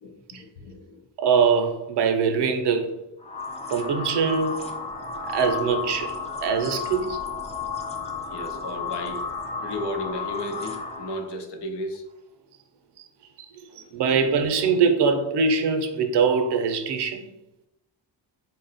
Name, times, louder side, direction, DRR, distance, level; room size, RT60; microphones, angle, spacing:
voice 1, 0.0-1.0 8.3-9.3 9.6-12.0 13.7-13.8, left 1 dB, 70° left, 5 dB, 0.7 m, -34 dB
voice 2, 1.2-2.9 3.7-4.7 5.2-6.1 6.4-7.2 13.0-13.1 13.4-13.5 13.9-17.2, right 5 dB, 70° right, 6 dB, 0.6 m, -22 dB
sound 1, 3.2-11.3, left 5 dB, 15° left, 0.4 m, -33 dB
3.9 x 2.1 x 3.9 m, 0.90 s
wide cardioid pair, 145°, 43 cm